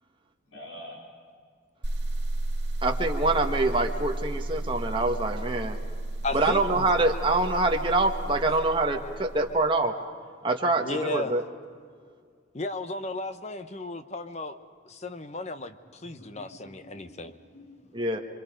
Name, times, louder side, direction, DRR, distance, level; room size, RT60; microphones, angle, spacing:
voice 1, 0.5-1.1 4.3-4.4 16.0-18.1, left 1 dB, 90° left, -3 dB, 4.8 m, -47 dB
sound 1, 1.8-9.6, right 1 dB, 60° right, 2.4 m, -33 dB
voice 2, 2.8-5.8 6.3-9.9 10.4-11.4 17.9-18.2, right 2 dB, 25° right, 2 dB, 1.6 m, -25 dB
voice 3, 6.2-6.9 10.8-11.3 12.5-14.6 14.8-17.3, left 2 dB, 35° left, 10 dB, 0.9 m, -34 dB
27.0 x 25.0 x 5.1 m, 2.1 s
head